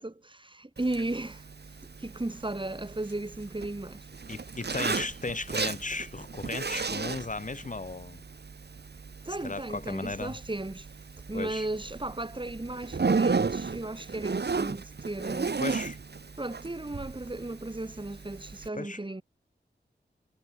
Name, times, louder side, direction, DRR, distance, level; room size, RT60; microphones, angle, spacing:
voice 1, 0.0-1.4 2.0-4.1 9.3-10.9 11.3-15.6 16.4-19.2, right 2 dB, 25° right, 2.3 m, -35 dB
Zipper (clothing), 0.8-18.7, right 4 dB, 65° right, 1.4 m, -35 dB
voice 2, 4.3-8.2 9.4-10.4 11.3-11.7 15.6-16.0 18.7-19.0, left 3 dB, 45° left, 1.2 m, -35 dB
wide cardioid pair, 65°, 18 cm